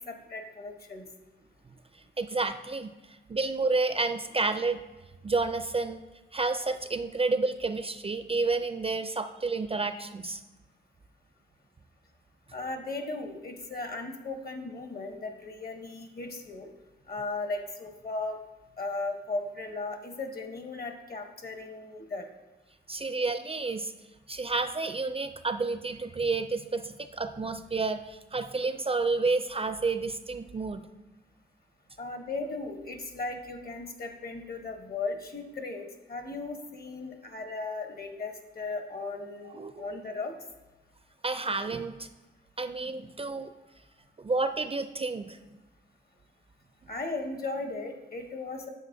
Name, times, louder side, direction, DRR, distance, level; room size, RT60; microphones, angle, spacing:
voice 1, 0.1-1.1 12.5-16.7 17.1-18.4 18.8-22.3 32.0-40.3 46.9-48.7, left 3 dB, 50° left, 4 dB, 1.1 m, -36 dB
voice 2, 2.2-2.9 3.3-4.8 5.2-6.0 6.3-10.4 22.9-23.9 24.3-30.9 39.4-39.9 41.2-42.1 42.6-43.5 44.2-45.4, right 3 dB, 30° right, 9 dB, 0.4 m, -30 dB
9.4 x 7.1 x 2.6 m, 1.1 s
cardioid pair, 70°, 20 cm